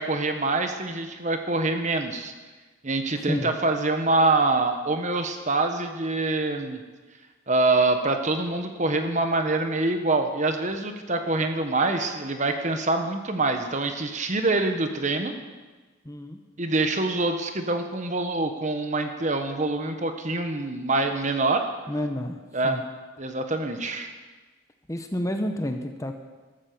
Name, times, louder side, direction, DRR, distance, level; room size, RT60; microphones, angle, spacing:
voice 1, 0.0-2.3 2.8-6.8 7.5-15.4 16.6-21.7 22.5-22.8 23.2-24.1, right 2 dB, 35° right, 6 dB, 1.3 m, -25 dB
voice 2, 16.0-16.4 21.9-22.4 22.6-22.8 24.9-26.1, left 1 dB, 15° left, 5 dB, 0.9 m, -29 dB
13.5 x 13.0 x 6.9 m, 1.3 s
head